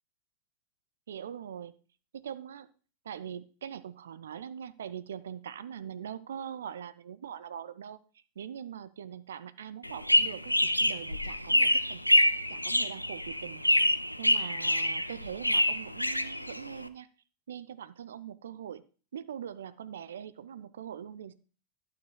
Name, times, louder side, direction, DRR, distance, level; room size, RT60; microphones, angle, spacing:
voice 1, 1.1-1.7 2.1-2.7 3.0-8.0 8.4-12.0 12.5-13.6 14.2-17.1 17.5-18.8 19.1-21.3, right 9 dB, 65° right, 13 dB, 0.5 m, -42 dB
sound 1, 9.8-16.9, left 1 dB, 90° left, 0.4 m, -26 dB
11.5 x 8.6 x 2.3 m, 0.38 s
figure-of-eight pair, 90°, 0 cm